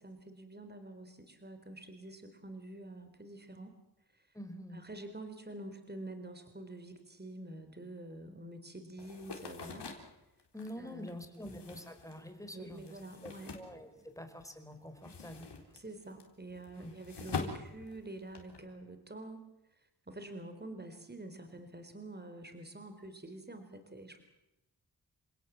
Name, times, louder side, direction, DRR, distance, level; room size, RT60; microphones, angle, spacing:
voice 1, 0.0-3.7 4.7-9.9 10.8-11.1 12.5-13.9 15.7-19.5 20.1-24.2, right 2 dB, 25° right, 8 dB, 4.0 m, -47 dB
voice 2, 4.3-4.9 10.5-15.5 16.8-16.9, equal, 10° left, 7 dB, 4.8 m, -47 dB
sound 1, 9.0-14.4 14.7-18.6, left 4 dB, 85° left, 3.9 m, -45 dB
29.0 x 17.0 x 7.6 m, 0.92 s
cardioid pair, 50°, 40 cm